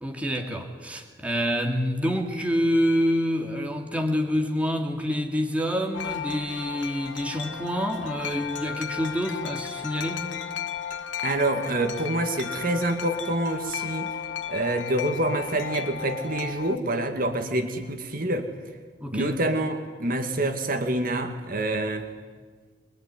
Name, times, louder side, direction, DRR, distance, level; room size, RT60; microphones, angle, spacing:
voice 1, 0.0-10.3 19.0-19.4, equal, 5° right, 2 dB, 2.5 m, -27 dB
Wind chime, 5.9-16.8, left 8 dB, 85° left, 1.1 m, -34 dB
voice 2, 11.2-14.1 14.5-18.5 19.1-22.1, right 1 dB, 50° right, 6 dB, 2.1 m, -27 dB
24.0 x 23.0 x 9.7 m, 1.5 s
head